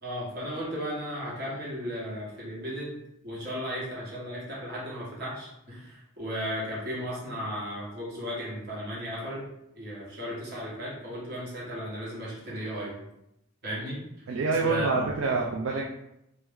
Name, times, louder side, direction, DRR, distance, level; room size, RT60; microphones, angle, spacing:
voice 1, 0.0-3.0 3.2-9.5 9.7-13.0 13.6-14.0 14.6-15.1, equal, 50° right, -6 dB, 1.2 m, -35 dB
voice 2, 14.3-15.8, right 4 dB, 70° right, -1 dB, 0.3 m, -26 dB
3.0 x 2.1 x 3.5 m, 0.83 s
head